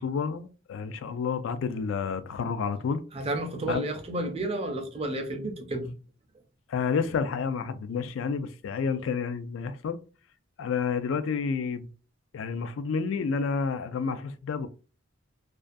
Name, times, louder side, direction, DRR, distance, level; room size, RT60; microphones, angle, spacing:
voice 1, 0.0-3.0 3.7-3.8 6.7-10.0 10.6-11.9 12.3-14.7, left 5 dB, 70° left, 0.3 m, -30 dB
voice 2, 3.1-5.9, right 1 dB, 30° right, 0.4 m, -31 dB
2.3 x 2.2 x 2.5 m
head